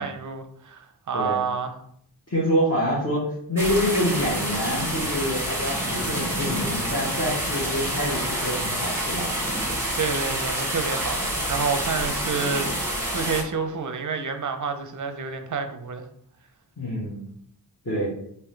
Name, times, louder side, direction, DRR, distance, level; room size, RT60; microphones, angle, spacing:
voice 1, 0.0-1.7 10.0-16.0, right 5 dB, 45° right, 7 dB, 0.5 m, -29 dB
voice 2, 2.3-9.3 16.8-17.2 17.8-18.1, equal, 35° left, -9 dB, 1.2 m, -26 dB
sound 1, 3.6-13.4, equal, 5° right, 1.2 m, -27 dB
3.7 x 2.8 x 3.2 m, 0.70 s
wide cardioid pair, 70°, 43 cm